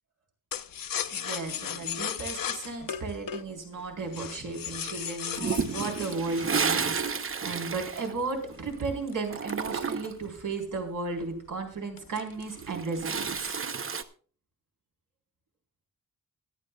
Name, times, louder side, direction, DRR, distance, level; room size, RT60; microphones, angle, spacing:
sound 1, 0.5-7.4 8.0-10.4 10.8-10.9 11.2-11.5 12.0-12.7 13.0-13.5, left 9 dB, 75° left, 0.7 m, -37 dB
voice 1, 1.1-13.5, right 4 dB, 65° right, 2 dB, 4.1 m, -35 dB
Toilet flush, 5.3-8.8 9.1-10.3 12.3-14.0, right 5 dB, 40° right, 0.8 m, -31 dB
25.0 x 8.6 x 2.3 m, 0.42 s
wide cardioid pair, 145°, 34 cm